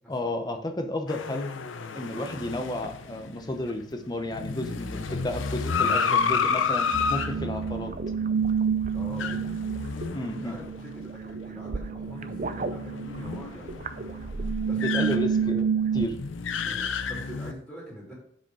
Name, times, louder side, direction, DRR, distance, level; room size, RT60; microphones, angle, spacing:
voice 1, 0.1-1.5 1.9-7.9 10.1-10.5 14.8-15.6 15.9-16.2, left 1 dB, 20° left, 5 dB, 0.8 m, -32 dB
sound 1, 1.1-11.0 11.4-11.5 12.0-17.5, left 5 dB, 75° left, 0.6 m, -31 dB
sound 2, 6.9-16.1, right 6 dB, 40° right, 0.5 m, -29 dB
voice 2, 8.9-9.6 10.0-10.1 10.4-15.5 16.6-18.1, equal, ahead, -5 dB, 3.0 m, -44 dB
7.5 x 5.1 x 4.9 m, 0.66 s
head